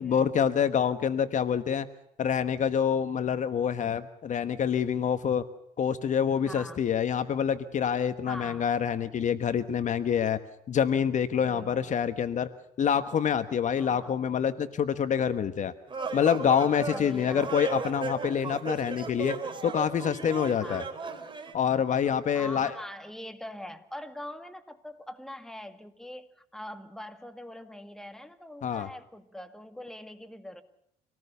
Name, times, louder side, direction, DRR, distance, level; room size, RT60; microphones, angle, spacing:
voice 1, 0.0-1.9 2.2-5.4 5.8-10.4 10.7-12.5 12.8-15.7 16.1-19.4 19.6-20.8 21.5-22.7 28.6-28.9, left 8 dB, 45° left, 11 dB, 1.3 m, -26 dB
voice 2, 6.4-6.8 8.2-8.7 11.4-12.0 13.8-14.1 16.9-17.5 20.6-20.9 22.3-30.6, left 1 dB, 5° left, 8 dB, 2.2 m, -43 dB
sound 1, 15.9-21.5, right 4 dB, 30° right, 4.0 m, -36 dB
26.0 x 19.0 x 6.9 m, 0.76 s
cardioid pair, 110°, 17 cm